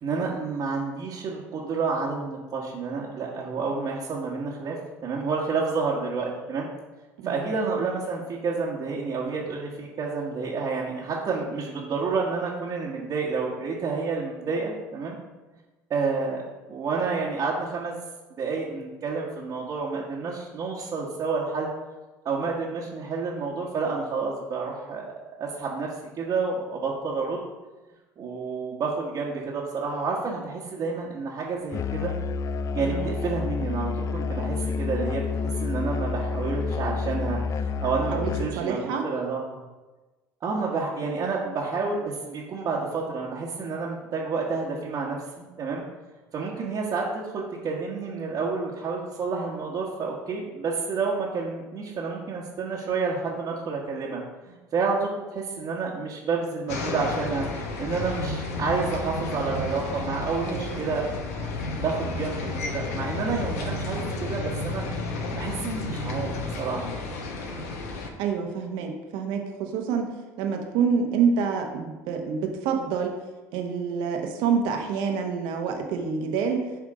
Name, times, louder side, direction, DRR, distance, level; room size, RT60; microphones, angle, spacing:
voice 1, 0.0-4.8 5.0-6.7 7.2-15.2 15.9-18.0 18.4-21.7 22.2-25.1 25.4-27.5 28.2-32.1 32.7-39.6 40.4-45.8 46.3-54.2 54.5-57.5 57.8-61.0 61.8-64.8 65.3-66.9, right 4 dB, 45° right, -5 dB, 1.3 m, -29 dB
Musical instrument, 31.7-38.6, left 5 dB, 40° left, 0.4 m, -29 dB
voice 2, 32.8-33.2 38.1-39.0 60.5-60.8 68.2-70.1 70.4-73.2 73.5-76.6, right 6 dB, 70° right, 3 dB, 1.1 m, -27 dB
sound 1, 56.7-68.1, left 2 dB, 85° left, 0.9 m, -32 dB
7.5 x 3.6 x 5.0 m, 1.2 s
hypercardioid pair, 75°, 8 cm